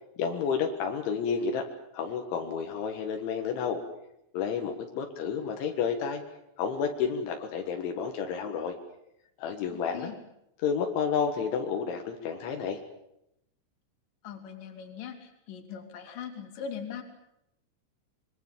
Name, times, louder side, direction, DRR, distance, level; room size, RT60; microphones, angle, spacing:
voice 1, 0.2-1.7 1.9-3.8 4.3-6.2 6.6-8.7 9.4-10.1 10.6-12.8, left 6 dB, 75° left, 4 dB, 4.0 m, -30 dB
voice 2, 9.7-10.2 14.2-17.0, left 7 dB, 50° left, 5 dB, 4.0 m, -40 dB
25.5 x 23.0 x 7.4 m, 0.81 s
omnidirectional pair, 5.5 m